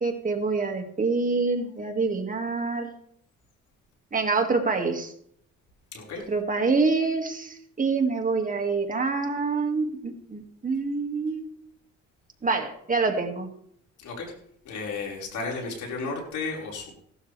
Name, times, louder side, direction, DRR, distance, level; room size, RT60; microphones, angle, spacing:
voice 1, 0.0-2.9 4.1-5.1 6.3-11.5 12.4-13.5, right 4 dB, 25° right, 3 dB, 2.2 m, -26 dB
voice 2, 5.9-6.3 14.0-14.3 14.7-16.9, left 4 dB, 75° left, -1 dB, 5.1 m, -33 dB
17.0 x 12.0 x 3.4 m, 0.67 s
cardioid pair, 90°, 30 cm